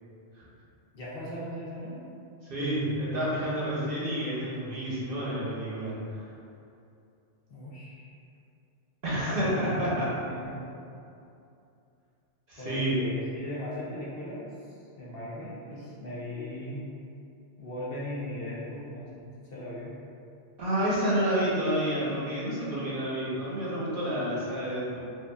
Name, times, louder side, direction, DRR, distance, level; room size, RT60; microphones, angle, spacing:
voice 1, 0.9-2.0 7.5-8.1 9.6-10.7 12.6-14.5 15.0-16.8 17.6-19.9, left 1 dB, 60° left, -7 dB, 0.8 m, -38 dB
voice 2, 2.5-6.2 9.0-10.1 12.5-12.9 20.6-25.0, equal, 55° right, -8 dB, 0.9 m, -29 dB
4.6 x 2.4 x 2.2 m, 2.6 s
omnidirectional pair, 1.2 m